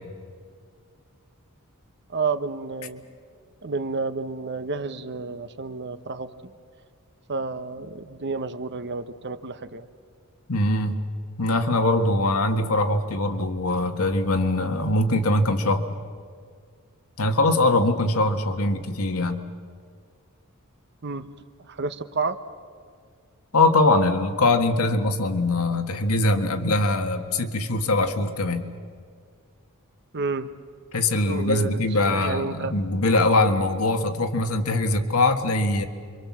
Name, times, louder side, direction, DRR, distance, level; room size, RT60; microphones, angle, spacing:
voice 1, 2.1-3.1 3.6-6.3 7.3-9.9 21.0-21.3 21.7-22.4 30.1-30.5 31.3-32.7, right 4 dB, 50° right, 11 dB, 1.0 m, -30 dB
voice 2, 10.5-11.0 11.4-15.8 17.2-19.4 23.5-28.6 30.9-35.8, left 2 dB, 70° left, 6 dB, 1.7 m, -22 dB
28.5 x 24.5 x 7.4 m, 2.1 s
head